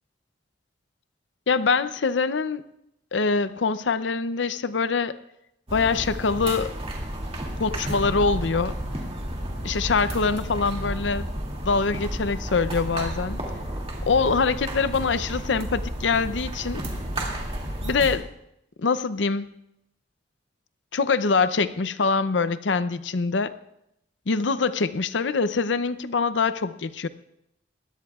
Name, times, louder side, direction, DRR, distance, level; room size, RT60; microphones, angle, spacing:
voice 1, 1.5-2.6 3.1-5.2 5.7-6.7 7.6-8.8 9.6-11.3 11.6-13.4 14.1-16.9 17.8-18.3 18.8-19.5 20.9-23.5 24.3-27.1, left 4 dB, 85° left, 13 dB, 0.6 m, -24 dB
sound 1, 5.7-18.2, right 1 dB, 35° right, 2.4 m, -32 dB
21.5 x 16.5 x 2.4 m, 0.82 s
head